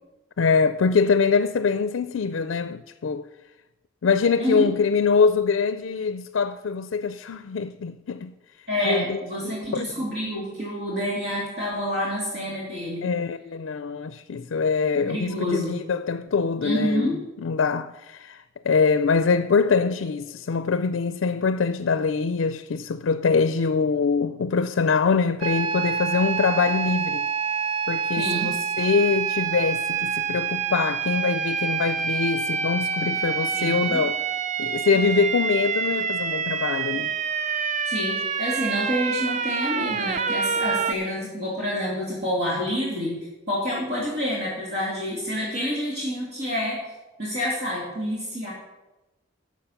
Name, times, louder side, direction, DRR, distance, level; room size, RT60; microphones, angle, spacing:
voice 1, 0.4-3.2 4.0-8.3 8.8-9.2 9.7-9.8 13.0-27.3 27.9-34.2 34.6-37.1, left 5 dB, 80° left, 0.4 m, -24 dB
voice 2, 4.4-4.7 8.7-13.1 14.9-15.7 16.6-17.2 28.1-28.5 33.5-34.1 37.8-43.2 43.5-46.8 47.2-48.5, equal, 55° right, 2.8 m, -28 dB
sound 1, 25.4-40.9, right 6 dB, 35° right, 0.4 m, -27 dB
11.5 x 7.3 x 5.8 m
head